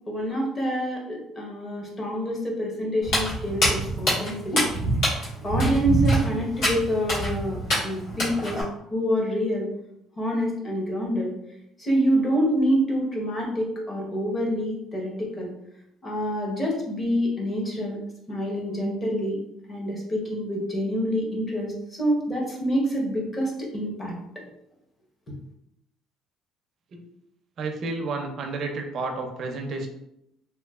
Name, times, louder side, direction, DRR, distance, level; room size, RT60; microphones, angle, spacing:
voice 1, 0.1-4.7 5.4-7.6 7.8-8.6 8.9-9.7 10.2-11.3 11.8-15.5 16.0-18.0 18.3-19.4 19.7-21.7 22.0-24.1 25.3-25.4, equal, 15° left, -1 dB, 0.7 m, -26 dB
Walk footsteps, 3.0-8.6, right 1 dB, 60° left, 1.4 m, -25 dB
voice 2, 27.6-29.9, right 3 dB, 35° right, 3 dB, 0.5 m, -31 dB
3.1 x 3.0 x 2.3 m, 0.79 s
cardioid pair, 175°, 0 cm